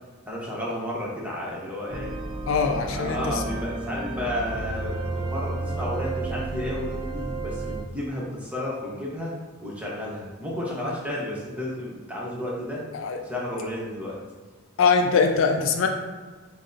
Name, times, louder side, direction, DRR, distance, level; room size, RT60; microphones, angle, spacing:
voice 1, 0.3-2.1 2.8-9.3 9.6-12.8 13.2-14.2, left 1 dB, 5° right, -5 dB, 0.7 m, -32 dB
sound 1, 1.9-7.8, right 2 dB, 25° right, 0.3 m, -32 dB
voice 2, 2.5-3.4 12.9-13.2 14.8-15.9, left 5 dB, 65° left, 4 dB, 0.3 m, -22 dB
6.0 x 2.0 x 2.6 m, 1.4 s
head